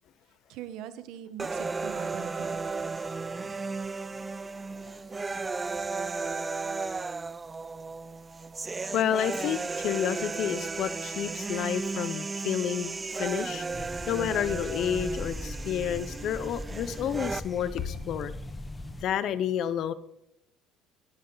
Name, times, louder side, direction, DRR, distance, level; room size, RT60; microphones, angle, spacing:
voice 1, 0.5-2.6, right 10 dB, 70° right, 11 dB, 1.3 m, -42 dB
sound 1, 1.4-17.4, right 4 dB, 20° right, 0.4 m, -35 dB
voice 2, 8.9-13.6 14.1-18.3 19.0-19.9, left 9 dB, 55° left, 15 dB, 0.9 m, -30 dB
sound 2, 13.7-19.0, left 1 dB, 15° left, 1.1 m, -39 dB
18.0 x 11.5 x 4.0 m, 0.80 s
cardioid pair, 120°, 0 cm